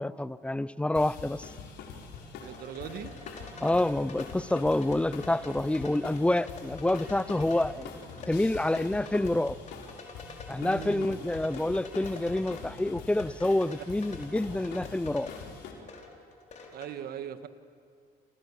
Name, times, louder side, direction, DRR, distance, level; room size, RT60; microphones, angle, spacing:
voice 1, 0.0-1.5 3.6-7.9 8.3-9.6 10.5-15.3, left 1 dB, 5° left, 17 dB, 0.6 m, -28 dB
sound 1, 0.9-15.7, left 5 dB, 90° left, 4.3 m, -44 dB
sound 2, 2.0-16.9, left 3 dB, 45° left, 5.0 m, -47 dB
voice 2, 2.4-3.2 10.6-11.1 16.7-17.5, right 9 dB, 65° right, 9 dB, 1.7 m, -39 dB
29.0 x 27.5 x 7.4 m, 2.5 s
cardioid pair, 110°, 17 cm